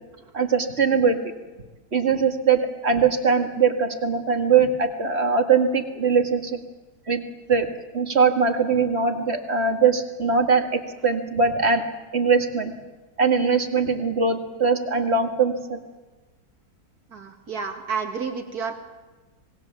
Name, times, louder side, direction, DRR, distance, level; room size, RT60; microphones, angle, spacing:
voice 1, 0.3-1.2 1.9-6.6 7.1-7.2 7.5-7.7 7.9-11.8 12.1-12.7 13.2-15.8, right 5 dB, 40° right, 5 dB, 2.1 m, -21 dB
voice 2, 17.1-18.8, right 5 dB, 60° right, 5 dB, 2.7 m, -30 dB
26.5 x 19.5 x 7.3 m, 1.3 s
omnidirectional pair, 1.8 m